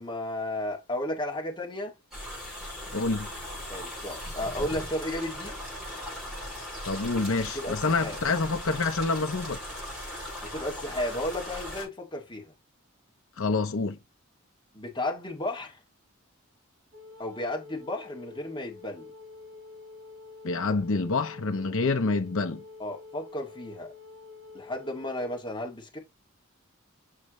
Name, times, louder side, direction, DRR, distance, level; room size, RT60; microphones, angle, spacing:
voice 1, 0.0-1.9 3.7-5.6 7.5-8.2 10.4-12.5 14.7-15.8 17.2-19.1 22.8-23.9 24.5-26.0, left 1 dB, 20° left, 2.1 m, -33 dB
sound 1, 2.1-11.8, equal, ahead, 5.5 m, -38 dB
voice 2, 2.9-3.3 6.9-9.6 13.4-14.0 20.4-22.6, left 3 dB, 70° left, 0.7 m, -27 dB
Wind instrument woodwind instrument, 16.9-25.4, left 4 dB, 70° right, 2.0 m, -48 dB
6.6 x 6.1 x 3.1 m
head